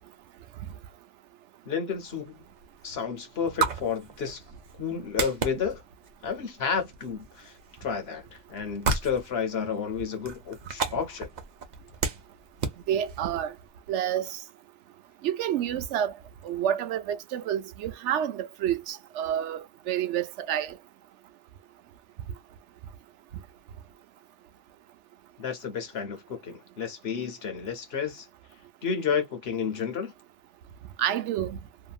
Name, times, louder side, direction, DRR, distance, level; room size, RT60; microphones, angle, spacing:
voice 1, 1.7-2.4 2.8-4.4 4.8-5.8 6.2-11.3 25.4-28.3 28.8-30.1, left 6 dB, 65° left, 1.1 m, -31 dB
sound 1, 1.9-13.7, right 4 dB, 45° right, 0.8 m, -35 dB
voice 2, 12.9-13.5 13.9-14.4 15.2-16.1 16.4-20.7 31.0-31.6, right 10 dB, 85° right, 0.9 m, -29 dB
2.8 x 2.5 x 2.3 m
omnidirectional pair, 1.2 m